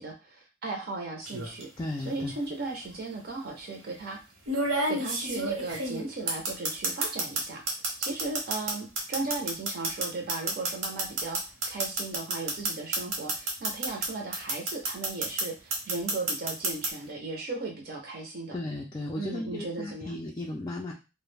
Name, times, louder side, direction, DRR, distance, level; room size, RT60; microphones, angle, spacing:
voice 1, 0.0-1.7 2.0-4.2 4.9-7.6 8.0-18.6 19.2-20.2, right 3 dB, 50° right, 1 dB, 0.5 m, -36 dB
sound 1, 1.3-1.6 2.8-2.9 4.5-7.4 7.7-14.1 14.3-15.4 15.7-16.9, right 2 dB, 85° right, 0.9 m, -29 dB
voice 2, 1.8-2.3 18.5-20.9, left 2 dB, 20° left, -1 dB, 0.3 m, -35 dB
2.3 x 2.0 x 3.2 m, 0.29 s
head